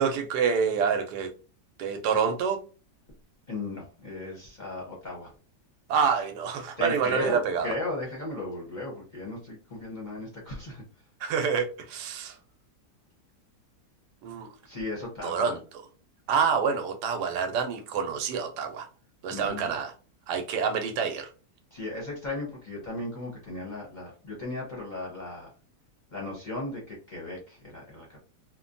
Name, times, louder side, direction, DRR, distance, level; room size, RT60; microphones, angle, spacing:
voice 1, 0.0-1.3 1.8-2.6 5.9-7.7 11.2-12.4 14.2-14.5 15.2-15.6 16.3-18.9 19.2-19.9 20.3-21.3, right 6 dB, 80° right, 1.2 m, -27 dB
voice 2, 3.5-5.3 6.8-10.8 14.6-15.5 19.3-19.7 21.7-25.5 26.1-28.2, left 2 dB, 35° left, 0.7 m, -36 dB
3.1 x 2.2 x 2.5 m
omnidirectional pair, 1.8 m